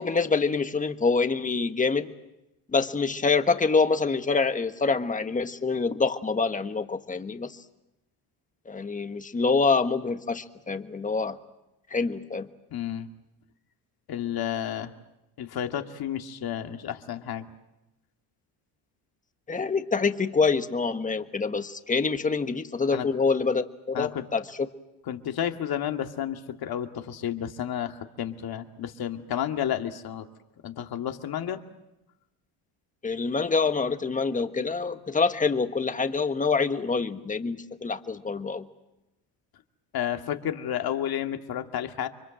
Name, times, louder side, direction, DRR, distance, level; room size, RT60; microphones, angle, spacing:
voice 1, 0.0-2.1 2.7-7.6 8.6-11.4 11.9-12.5 19.5-24.5 33.0-38.7, left 4 dB, 15° left, 9 dB, 1.4 m, -26 dB
voice 2, 12.7-13.1 14.1-14.9 15.4-17.5 22.9-23.1 23.9-24.2 25.1-30.3 30.6-31.6 39.9-42.1, left 10 dB, 55° left, 6 dB, 2.2 m, -31 dB
29.5 x 24.5 x 7.7 m, 0.94 s
cardioid pair, 120°, 45 cm